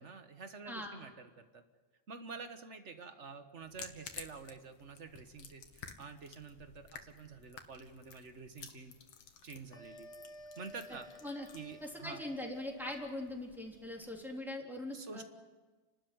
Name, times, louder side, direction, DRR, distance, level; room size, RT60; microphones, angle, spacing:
voice 1, 0.0-1.6 2.1-8.9 9.4-10.1 10.6-11.1 11.5-12.2 14.9-15.2, right 5 dB, 40° right, 8 dB, 1.5 m, -48 dB
voice 2, 0.7-1.0 11.2-11.5 11.8-15.2, left 1 dB, ahead, -1 dB, 3.4 m, -41 dB
sound 1, 3.6-14.3, left 6 dB, 90° left, 2.2 m, -54 dB
sound 2, 9.7-13.2, equal, 30° left, 5.2 m, -54 dB
29.5 x 12.5 x 9.5 m, 1.3 s
omnidirectional pair, 2.1 m